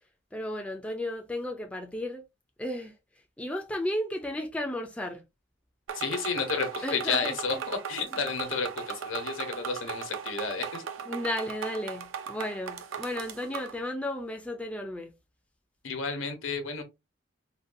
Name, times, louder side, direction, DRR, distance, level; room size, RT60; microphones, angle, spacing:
voice 1, 0.3-2.2 2.6-2.9 3.4-5.2 6.8-7.6 8.1-8.2 11.1-15.1, left 1 dB, 5° left, 0.3 m, -34 dB
voice 2, 5.9-10.9 15.8-16.8, left 5 dB, 85° left, 0.9 m, -31 dB
sound 1, 5.9-13.8, right 7 dB, 90° right, 0.5 m, -38 dB
3.8 x 2.2 x 2.6 m
head